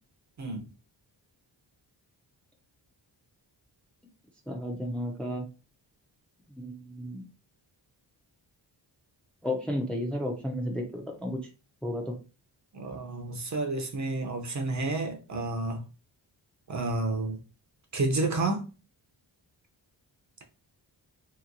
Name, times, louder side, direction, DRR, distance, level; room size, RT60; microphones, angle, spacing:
voice 1, 4.5-5.4 6.6-7.3 9.4-11.4 11.8-12.1, left 1 dB, 5° left, 0.4 m, -32 dB
voice 2, 12.7-15.8 16.7-17.4 17.9-18.6, right 2 dB, 40° right, 0.6 m, -30 dB
2.9 x 2.7 x 2.6 m
wide cardioid pair, 115°, 43 cm